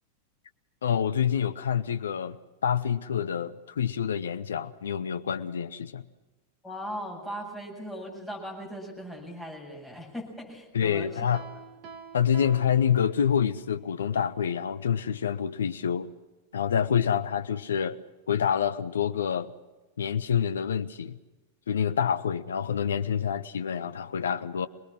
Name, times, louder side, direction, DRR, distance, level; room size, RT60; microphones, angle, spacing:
voice 1, 0.8-2.4 2.6-6.0 10.7-11.4 12.1-16.1 16.5-18.0 18.3-19.5 20.0-21.2 21.7-24.7, left 8 dB, 65° left, 13 dB, 0.7 m, -27 dB
voice 2, 6.6-11.1, equal, 5° left, -2 dB, 7.8 m, -38 dB
Piano, 11.3-13.6, right 6 dB, 40° right, 1.8 m, -47 dB
25.5 x 20.0 x 6.2 m, 1.2 s
figure-of-eight pair, 90°, 0 cm